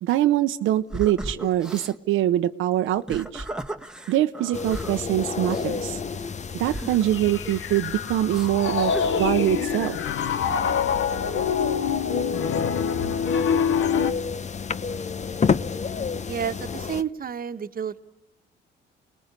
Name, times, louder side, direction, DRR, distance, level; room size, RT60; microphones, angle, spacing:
voice 1, 0.0-3.5 4.1-6.0 6.6-10.0, right 13 dB, 85° right, 7 dB, 0.9 m, -24 dB
sound 1, 0.9-2.0 2.9-5.0 5.5-5.7 6.6-7.8 8.3-8.5 8.9-9.6, right 1 dB, 5° right, 1.6 m, -36 dB
sound 2, 4.5-17.0, left 5 dB, 35° left, 1.0 m, -31 dB
Piano, 7.1-14.1, left 7 dB, 75° left, 1.3 m, -25 dB
voice 2, 16.3-18.0, right 7 dB, 45° right, 8 dB, 1.4 m, -30 dB
29.0 x 20.0 x 8.3 m, 0.87 s
cardioid pair, 90°, 20 cm